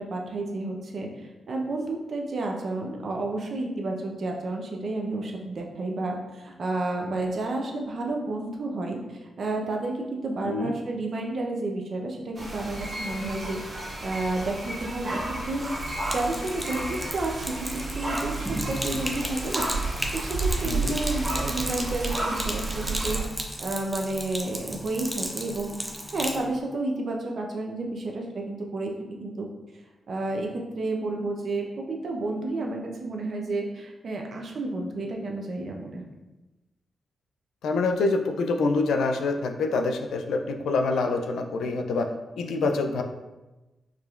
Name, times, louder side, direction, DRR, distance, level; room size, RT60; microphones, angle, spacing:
voice 1, 0.0-15.7 16.1-19.7 20.1-23.2 23.6-25.8 26.1-29.5 30.1-36.0, right 2 dB, 65° right, 1 dB, 0.7 m, -31 dB
sound 1, 12.3-23.2, right 2 dB, 45° right, 1.4 m, -32 dB
Sink (filling or washing), 15.5-26.4, equal, 5° right, 0.6 m, -35 dB
voice 2, 20.6-21.0 37.6-42.1 42.4-43.0, left 3 dB, 85° left, 5 dB, 0.3 m, -26 dB
4.7 x 2.8 x 2.4 m, 1.1 s
cardioid pair, 55°, 0 cm